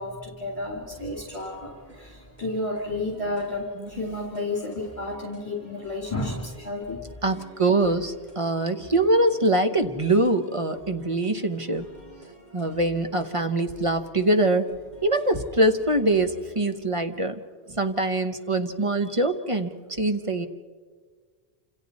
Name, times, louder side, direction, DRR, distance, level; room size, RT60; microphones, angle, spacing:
voice 1, 0.0-7.0, left 2 dB, 30° left, -1 dB, 2.6 m, -31 dB
sound 1, 0.9-16.6, right 2 dB, 65° right, 8.4 m, -50 dB
voice 2, 7.2-11.9 12.5-14.7 15.0-17.4 17.7-19.7 20.0-20.5, right 2 dB, 35° right, 7 dB, 1.0 m, -23 dB
28.5 x 27.0 x 4.2 m, 1.5 s
omnidirectional pair, 1.0 m